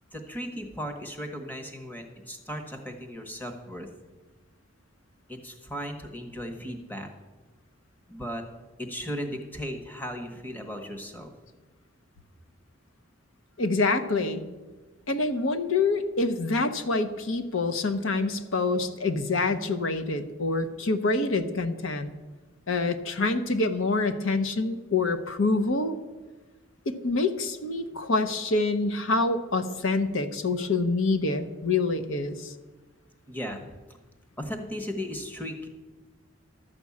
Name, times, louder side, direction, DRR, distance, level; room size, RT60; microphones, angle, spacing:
voice 1, 0.1-3.9 5.3-7.1 8.1-8.4 8.8-11.3 33.3-33.7 34.4-35.7, equal, 10° left, 5 dB, 1.1 m, -36 dB
voice 2, 13.6-14.4 15.1-22.1 22.7-25.9 26.9-32.5, left 3 dB, 80° left, 9 dB, 0.9 m, -26 dB
12.5 x 5.3 x 8.5 m, 1.2 s
head